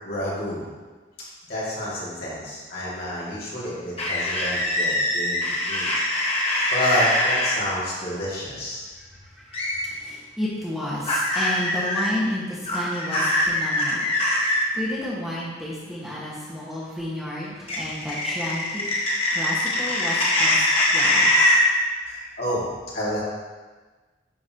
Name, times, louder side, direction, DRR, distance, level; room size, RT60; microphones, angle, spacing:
voice 1, 0.0-0.7 1.5-5.9 6.1-6.4 6.7-8.8 22.0-22.7 22.9-23.2, equal, 55° left, -7 dB, 2.5 m, -29 dB
sound 1, 4.0-7.5 9.5-9.8 11.1-12.1 12.7-14.6 17.7-21.6, left 1 dB, 30° left, 1.5 m, -22 dB
voice 2, 10.0-14.1 14.4-18.8 19.3-20.6 20.9-21.7 22.0-22.3, left 1 dB, ahead, -8 dB, 1.6 m, -31 dB
10.5 x 5.6 x 3.0 m, 1.3 s
head